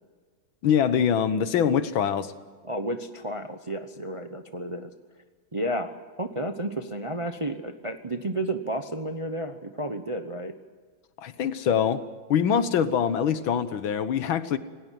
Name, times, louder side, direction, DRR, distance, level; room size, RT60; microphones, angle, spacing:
voice 1, 0.6-2.3 11.2-12.0 12.3-14.6, left 8 dB, 80° left, 12 dB, 1.9 m, -24 dB
voice 2, 2.6-4.9 5.5-10.5, right 1 dB, 30° right, 7 dB, 0.6 m, -32 dB
27.0 x 17.5 x 7.6 m, 1.6 s
omnidirectional pair, 2.1 m